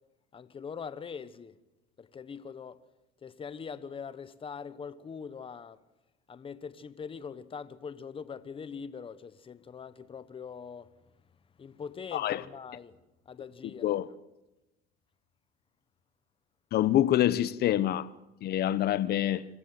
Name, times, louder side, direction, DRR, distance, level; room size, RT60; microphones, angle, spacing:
voice 1, 0.3-1.6 2.0-2.8 3.2-5.8 6.3-10.9 11.6-13.0 13.2-14.0, left 6 dB, 25° left, 1.2 m, -42 dB
voice 2, 12.1-12.4 13.8-14.1 16.7-18.1 18.4-19.5, left 12 dB, 50° left, 1.0 m, -26 dB
26.5 x 14.5 x 7.7 m
supercardioid pair, 115°, 21 cm